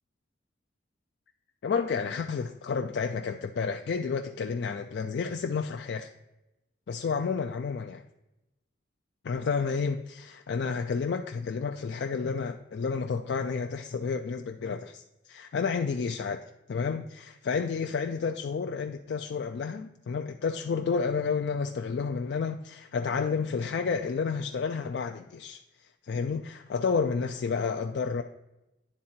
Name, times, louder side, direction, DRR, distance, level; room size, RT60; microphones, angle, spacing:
voice 1, 1.6-6.1 6.9-8.0 9.2-16.4 16.7-25.6 26.0-28.2, left 5 dB, 65° left, 6 dB, 0.3 m, -30 dB
9.9 x 3.7 x 4.3 m, 0.95 s
head